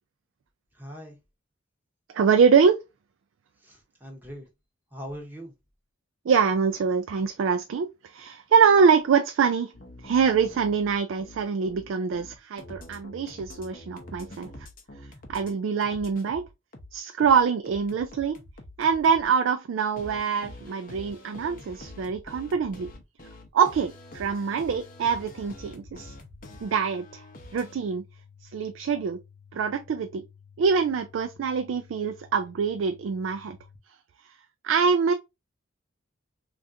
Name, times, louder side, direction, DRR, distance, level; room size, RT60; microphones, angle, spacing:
voice 1, 0.7-1.2 3.6-4.5 4.9-5.5 17.0-17.1, equal, 10° right, 0.9 m, -41 dB
voice 2, 2.1-2.8 6.3-9.7 10.0-14.5 15.3-16.4 16.9-18.4 18.8-22.9 23.5-26.1 26.6-27.2 27.5-28.0 28.5-29.2 29.5-30.2 30.6-33.6 34.6-35.1, right 6 dB, 65° right, 0.3 m, -24 dB
sound 1, 9.7-15.5 15.8-19.2 20.0-27.7, left 1 dB, 40° left, 0.7 m, -46 dB
sound 2, 23.8-33.8, left 7 dB, 45° right, 0.8 m, -54 dB
3.5 x 2.4 x 2.6 m
head